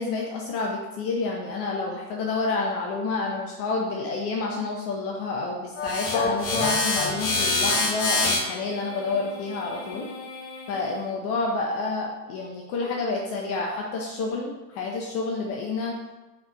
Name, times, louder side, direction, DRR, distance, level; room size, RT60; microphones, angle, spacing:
voice 1, 0.0-10.1 10.7-15.9, left 3 dB, 30° left, 0 dB, 0.7 m, -29 dB
sound 1, 5.8-10.9, left 3 dB, 45° left, 1.4 m, -27 dB
4.4 x 4.2 x 5.2 m, 1.1 s
figure-of-eight pair, 90°, 50 cm